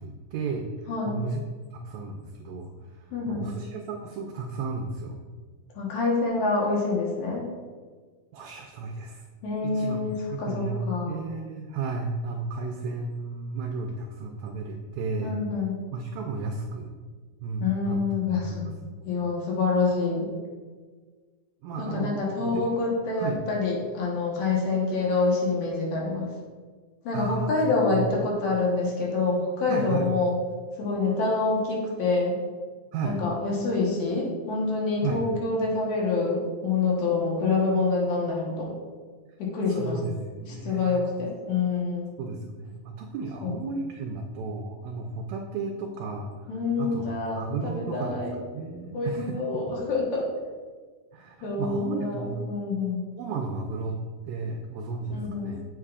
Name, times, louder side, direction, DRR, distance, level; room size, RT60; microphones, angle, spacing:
voice 1, 0.0-1.4 1.7-5.2 8.3-9.2 9.6-15.4 15.9-16.9 17.4-19.1 21.6-22.6 23.2-23.4 27.1-28.2 29.7-30.1 32.9-33.2 35.0-35.2 39.7-41.0 42.2-46.5 46.8-48.2 48.5-49.6 51.1-52.4 53.2-55.6, right 4 dB, 80° right, 2 dB, 1.7 m, -34 dB
voice 2, 3.1-3.5 5.8-7.5 9.4-11.3 15.2-15.7 17.6-18.7 19.0-20.3 21.8-26.3 27.0-30.3 30.8-32.3 33.0-38.7 39.4-40.0 40.5-42.1 43.4-43.6 46.5-48.3 48.9-50.3 51.4-53.0 55.1-55.5, left 3 dB, 70° left, -3 dB, 2.5 m, -26 dB
7.6 x 6.5 x 2.4 m, 1.5 s
omnidirectional pair, 3.6 m